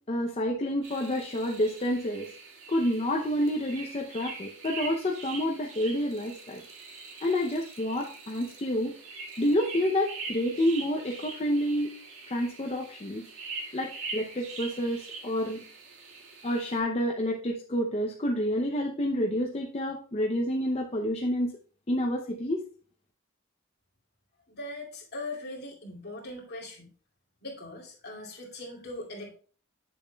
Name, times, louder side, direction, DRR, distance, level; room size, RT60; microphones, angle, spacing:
voice 1, 0.1-2.3 2.7-6.6 7.2-8.9 9.4-11.9 12.3-13.3 13.7-15.6 16.4-21.5 21.9-22.6, equal, 30° left, 0 dB, 0.6 m, -29 dB
sound 1, 0.8-16.8, right 4 dB, 75° right, 2.0 m, -43 dB
voice 2, 24.5-26.9 27.4-29.4, left 2 dB, 55° left, -2 dB, 2.5 m, -40 dB
8.1 x 7.0 x 2.3 m, 0.42 s
head